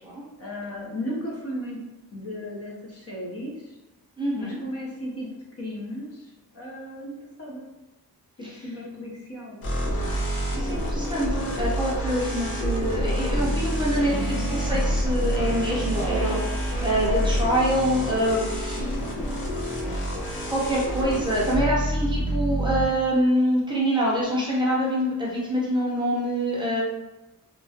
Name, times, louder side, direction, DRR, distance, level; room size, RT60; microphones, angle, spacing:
voice 1, 0.4-1.8 2.1-3.8 4.4-7.1 7.4-7.7 8.4-9.6 14.1-14.5 15.9-16.2, left 1 dB, 40° left, -3 dB, 0.6 m, -35 dB
voice 2, 4.2-4.6 8.4-8.6 10.5-16.4 16.8-18.9 20.5-26.8, equal, 15° right, -6 dB, 0.6 m, -25 dB
sound 1, 9.6-22.9, equal, 75° left, 0.8 m, -27 dB
2.9 x 2.3 x 2.7 m, 1.0 s
wide cardioid pair, 165°, 36 cm